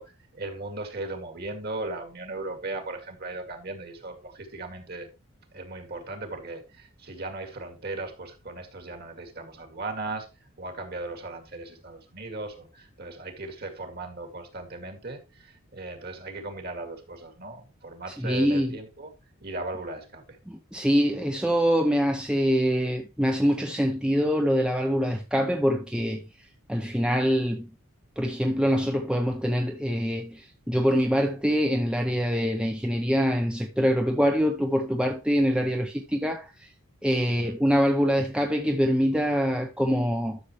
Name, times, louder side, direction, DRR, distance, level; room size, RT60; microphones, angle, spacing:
voice 1, 0.0-5.1 5.5-10.3 10.6-19.1 19.4-20.2 37.3-37.5, right 2 dB, 45° right, 2.3 m, -37 dB
voice 2, 18.2-18.8 20.5-26.2 26.7-27.7 28.2-36.7 37.0-40.4, equal, 5° right, 0.7 m, -24 dB
12.0 x 6.9 x 3.1 m
head